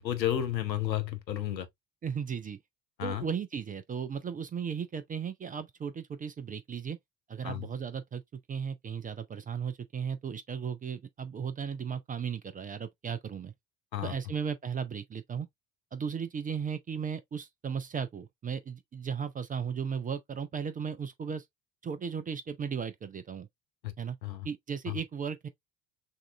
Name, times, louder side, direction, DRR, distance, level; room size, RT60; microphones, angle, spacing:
voice 1, 0.0-1.7 3.0-3.2 7.4-7.7 13.9-14.1 23.8-23.9 24.2-24.5 24.9-25.0, left 11 dB, 85° left, 0.7 m, -32 dB
voice 2, 2.0-2.6 3.0-7.0 7.3-8.2 8.5-13.5 14.0-15.5 15.9-21.4 21.8-23.5 24.0-24.2 24.4-25.5, right 6 dB, 20° right, 0.4 m, -36 dB
6.3 x 2.4 x 2.3 m
figure-of-eight pair, 55°, 50 cm